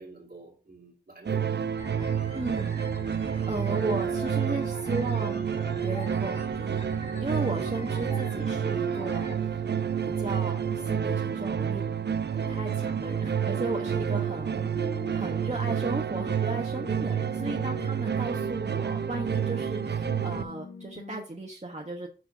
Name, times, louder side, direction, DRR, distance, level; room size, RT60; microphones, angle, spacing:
voice 1, 0.0-1.6 7.6-7.7 14.2-14.5 18.3-18.5, right 2 dB, 65° right, 2.6 m, -47 dB
sound 1, 1.3-20.4, right 8 dB, 85° right, 0.4 m, -29 dB
sound 2, 1.8-9.4, left 1 dB, 40° left, 2.6 m, -44 dB
voice 2, 2.3-2.8 3.1-5.5 5.8-6.8 7.2-9.6 10.0-11.8 12.3-14.6 15.1-22.1, right 2 dB, 40° right, 1.2 m, -35 dB
sound 3, 6.1-21.3, left 3 dB, 70° left, 1.2 m, -46 dB
6.2 x 4.4 x 6.1 m
wide cardioid pair, 45°, 17 cm